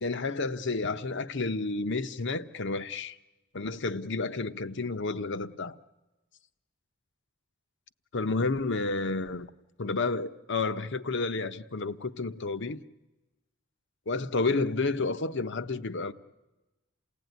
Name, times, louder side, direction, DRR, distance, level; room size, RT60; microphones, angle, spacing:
voice 1, 0.0-3.2 3.5-5.8 8.1-9.5 9.8-12.8 14.1-16.1, left 3 dB, 60° left, 0.9 m, -30 dB
28.5 x 17.0 x 9.4 m
head